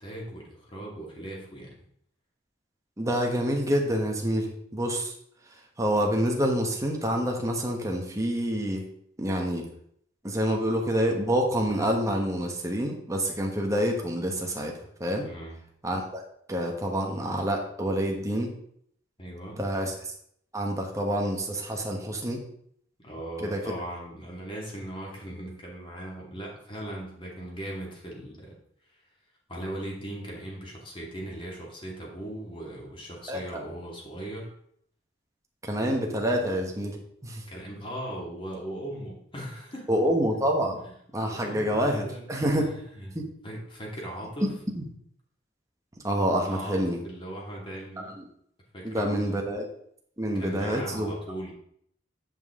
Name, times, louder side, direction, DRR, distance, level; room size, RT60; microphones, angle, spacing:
voice 1, 0.0-1.8 15.2-15.6 19.2-19.6 23.0-28.6 29.5-34.5 37.5-39.9 41.3-42.3 42.6-43.2 43.4-44.5 46.5-48.1 48.7-49.4 50.3-51.5, right 1 dB, 30° left, -3 dB, 2.2 m, -39 dB
voice 2, 3.0-5.1 5.8-8.8 9.2-9.6 10.2-15.3 15.8-16.2 16.5-18.5 19.6-20.1 20.5-22.4 23.4-23.6 33.3-33.6 35.6-37.4 39.9-40.8 41.1-42.7 43.1-43.3 44.4-44.5 44.7-44.8 46.0-47.0 48.0-48.2 48.8-49.7 50.2-51.2, equal, 15° right, 1 dB, 1.3 m, -27 dB
8.9 x 5.5 x 3.7 m, 0.67 s
head